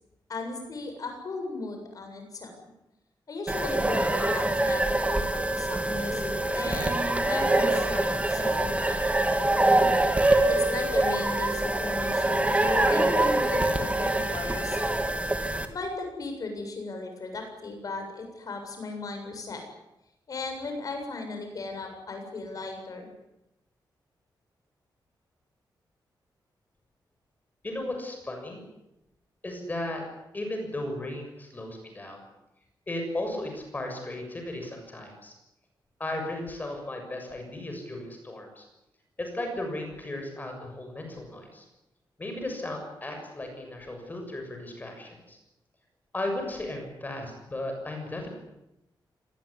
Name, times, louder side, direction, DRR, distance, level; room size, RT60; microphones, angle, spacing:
voice 1, 0.3-2.5 3.3-9.0 10.5-14.9 15.7-19.6 20.3-23.1, left 3 dB, 50° left, 4 dB, 7.5 m, -36 dB
sound 1, 3.5-15.6, right 2 dB, 15° right, 2.4 m, -25 dB
voice 2, 27.6-28.7 29.4-30.0 30.3-32.2 32.9-35.3 36.0-38.6 39.2-41.6 42.2-45.4 46.1-48.3, left 1 dB, 20° left, 4 dB, 6.9 m, -35 dB
24.5 x 19.5 x 9.9 m, 0.89 s
wide cardioid pair, 145°, 8 cm